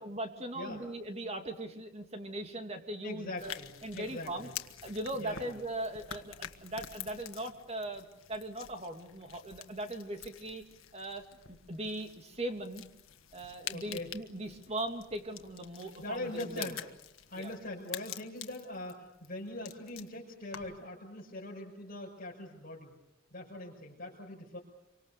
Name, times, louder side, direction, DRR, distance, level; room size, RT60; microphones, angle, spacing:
voice 1, 0.0-3.6 3.8-4.5 4.8-10.6 10.9-12.8 13.3-16.8 17.3-17.5, right 1 dB, 30° right, 5 dB, 2.7 m, -39 dB
voice 2, 3.0-4.5 5.2-5.5 13.7-14.1 16.0-16.8 17.3-22.9 23.3-24.6, left 1 dB, 45° left, -5 dB, 5.7 m, -42 dB
sound 1, 3.4-20.9, left 10 dB, 90° left, 1.6 m, -48 dB
27.5 x 25.0 x 6.9 m, 0.84 s
head